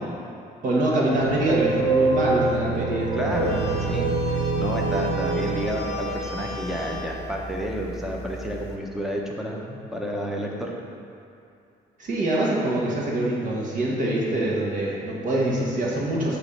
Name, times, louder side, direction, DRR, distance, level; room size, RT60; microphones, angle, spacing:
voice 1, 0.6-3.6 12.0-16.4, right 1 dB, 50° right, -4 dB, 1.6 m, -24 dB
sound 1, 1.1-7.3, right 3 dB, 80° right, 1.1 m, -26 dB
voice 2, 3.1-10.7, equal, ahead, -2 dB, 1.1 m, -30 dB
sound 2, 3.3-8.8, left 1 dB, 45° left, 1.0 m, -35 dB
8.4 x 3.3 x 6.6 m, 2.5 s
cardioid pair, 110°, 17 cm